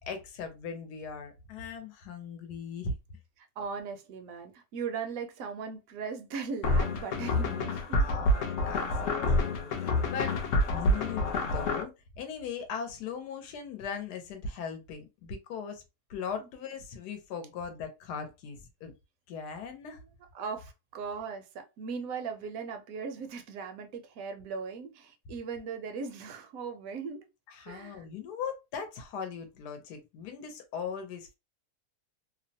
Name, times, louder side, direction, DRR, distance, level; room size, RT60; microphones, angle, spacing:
voice 1, 0.1-3.0 8.0-10.4 10.7-15.8 16.1-18.9 19.3-20.0 27.5-31.3, left 6 dB, 90° left, 1.2 m, -39 dB
voice 2, 3.4-8.1 20.3-27.3 27.7-28.0, right 5 dB, 70° right, 0.9 m, -38 dB
sound 1, 6.6-11.8, left 1 dB, 65° left, 0.8 m, -28 dB
2.8 x 2.0 x 2.6 m
omnidirectional pair, 1.7 m